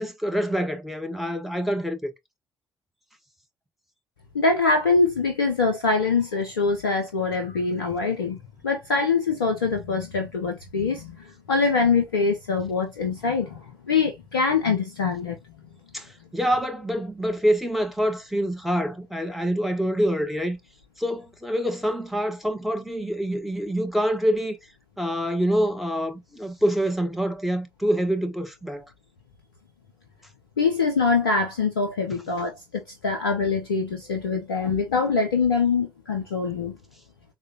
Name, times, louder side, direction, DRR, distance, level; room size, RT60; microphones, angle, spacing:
voice 1, 0.0-2.1 15.9-20.6 21.0-24.6 25.0-28.8 32.1-32.2, equal, ahead, 0.8 m, -26 dB
voice 2, 4.3-8.4 8.6-15.4 30.6-36.8, left 4 dB, 85° left, 0.4 m, -24 dB
3.6 x 2.1 x 2.6 m
figure-of-eight pair, 50°, 12 cm